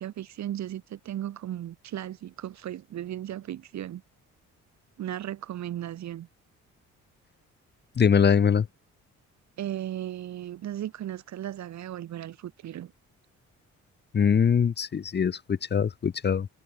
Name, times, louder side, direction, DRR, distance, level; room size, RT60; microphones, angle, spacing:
voice 1, 0.0-4.0 5.0-6.3 9.6-12.9, right 12 dB, 65° right, 1.4 m, -36 dB
voice 2, 8.0-8.7 14.1-16.5, left 7 dB, 35° left, 0.9 m, -22 dB
cardioid pair, 90°, 30 cm